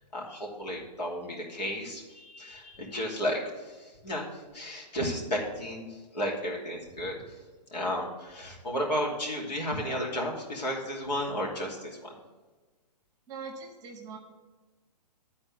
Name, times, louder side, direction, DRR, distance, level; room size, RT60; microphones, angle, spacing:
voice 1, 0.1-7.2 7.7-12.1, equal, 80° left, -2 dB, 2.8 m, -33 dB
voice 2, 13.3-14.2, right 5 dB, 15° right, 3 dB, 1.0 m, -41 dB
10.5 x 4.3 x 6.9 m, 1.3 s
hypercardioid pair, 150°, 21 cm